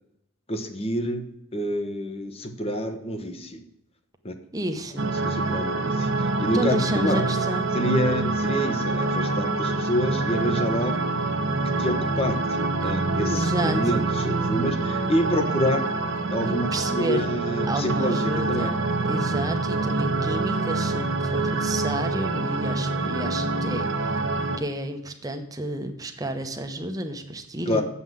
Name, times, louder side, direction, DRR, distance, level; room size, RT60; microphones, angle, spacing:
voice 1, 0.5-1.2 1.5-3.6 4.2-4.3 5.2-7.2 7.7-11.0 11.8-15.8 16.3-18.7 27.7-27.8, equal, 25° left, 7 dB, 0.9 m, -27 dB
voice 2, 4.5-5.1 6.5-7.7 12.8-12.9 13.2-14.1 16.4-17.3 17.7-18.8 19.0-24.2 24.6-27.8, right 1 dB, 15° right, 6 dB, 0.9 m, -31 dB
sound 1, 5.0-24.6, right 3 dB, 60° right, 0.9 m, -26 dB
7.9 x 5.7 x 7.5 m, 0.85 s
head